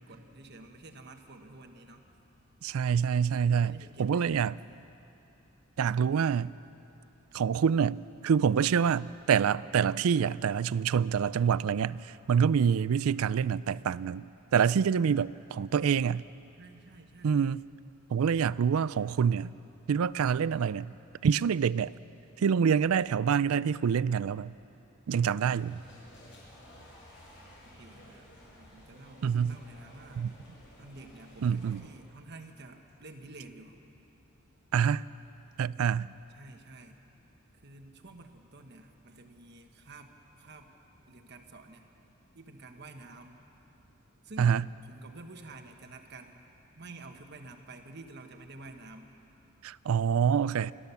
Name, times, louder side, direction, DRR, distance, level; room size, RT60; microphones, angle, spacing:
voice 1, 0.0-2.0 3.4-4.8 16.6-17.4 27.6-28.3 28.5-30.3 30.8-33.8 36.0-37.0 37.6-40.1 40.4-40.7 41.1-41.9 42.3-43.4 44.2-44.6 44.8-46.4 46.8-49.1, right 2 dB, 50° right, 1.3 m, -50 dB
voice 2, 2.6-4.6 5.8-6.5 7.3-14.2 14.5-16.2 17.2-17.6 18.1-19.5 19.9-20.9 21.2-21.9 22.4-24.5 25.1-25.8 29.2-29.6 30.2-30.3 31.4-31.8 34.7-35.0 35.6-36.1 44.4-44.6 49.6-50.7, right 7 dB, 75° right, 0.4 m, -26 dB
sound 1, 25.4-31.8, equal, 60° left, 6.8 m, -54 dB
29.0 x 13.0 x 7.0 m
head